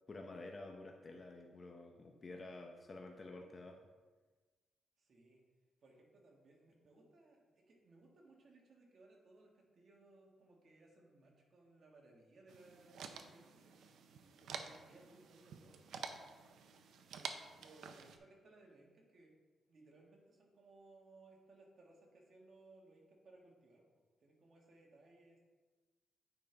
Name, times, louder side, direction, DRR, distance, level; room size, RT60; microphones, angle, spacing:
voice 1, 0.1-3.8, left 2 dB, 35° left, 2 dB, 0.7 m, -50 dB
voice 2, 5.0-5.4 5.8-13.8 14.4-15.9 17.0-19.3 19.7-23.8 24.2-25.4, right 2 dB, 50° right, -1 dB, 1.8 m, -63 dB
sound 1, 12.5-18.2, right 6 dB, 80° right, 0.6 m, -50 dB
9.0 x 5.3 x 3.4 m, 1.3 s
cardioid pair, 100°, 0 cm